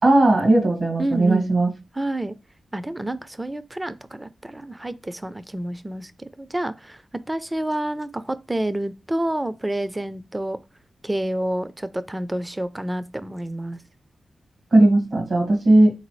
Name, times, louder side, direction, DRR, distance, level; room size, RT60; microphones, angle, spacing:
voice 1, 0.0-1.7 14.7-15.9, right 2 dB, 65° right, 2.0 m, -17 dB
voice 2, 1.0-1.6 2.0-2.3 2.7-7.0 7.3-10.6 11.0-13.8, right 1 dB, 20° right, 0.5 m, -28 dB
3.9 x 3.8 x 3.1 m
cardioid pair, 50°, 0 cm